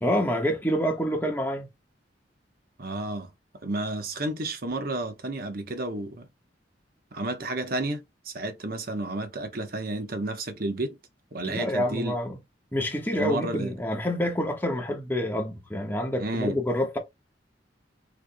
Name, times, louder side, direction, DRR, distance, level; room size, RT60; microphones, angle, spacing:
voice 1, 0.0-1.7 11.4-12.4 12.7-17.0, equal, 10° left, 1.3 m, -27 dB
voice 2, 2.8-3.3 3.6-6.3 7.1-11.0 11.3-12.2 13.1-13.7 16.2-16.6, right 2 dB, 55° right, 1.0 m, -31 dB
6.5 x 3.3 x 2.2 m
head